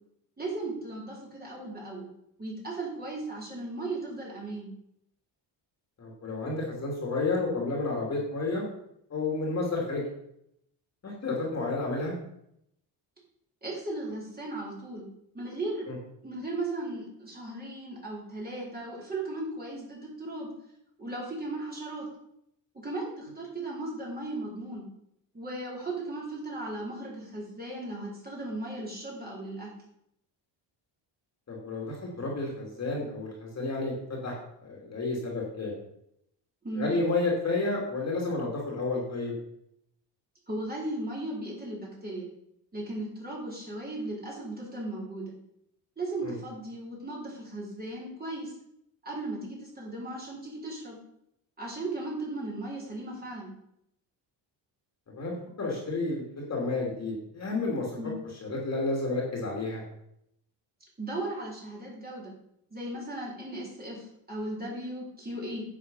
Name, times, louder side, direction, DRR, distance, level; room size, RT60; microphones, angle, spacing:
voice 1, 0.4-2.1 2.4-4.7 13.6-15.0 15.3-15.9 16.2-20.5 21.0-22.1 22.7-24.8 25.3-29.7 36.6-36.9 40.5-42.3 42.7-45.3 46.0-48.5 49.0-51.0 51.6-53.5 58.0-58.1 61.0-62.3 62.7-65.6, right 2 dB, 20° right, -5 dB, 4.5 m, -36 dB
voice 2, 6.0-8.6 9.1-10.1 11.0-12.1 15.9-16.0 31.5-34.3 34.6-35.7 36.8-39.3 46.2-46.3 55.1-57.9 58.4-59.8, left 3 dB, 35° left, -1 dB, 2.9 m, -31 dB
10.0 x 7.7 x 5.6 m, 0.76 s
cardioid pair, 145°, 47 cm